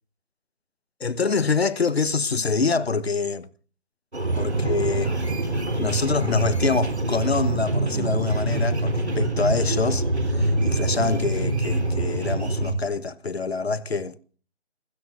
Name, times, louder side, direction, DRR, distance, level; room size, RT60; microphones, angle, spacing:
voice 1, 1.0-3.5 4.4-5.1 5.8-10.0 10.3-14.2, left 4 dB, 65° left, 1.0 m, -25 dB
sound 1, 4.1-12.7, right 2 dB, 75° right, 3.5 m, -25 dB
29.5 x 16.0 x 2.5 m
figure-of-eight pair, 155°, 34 cm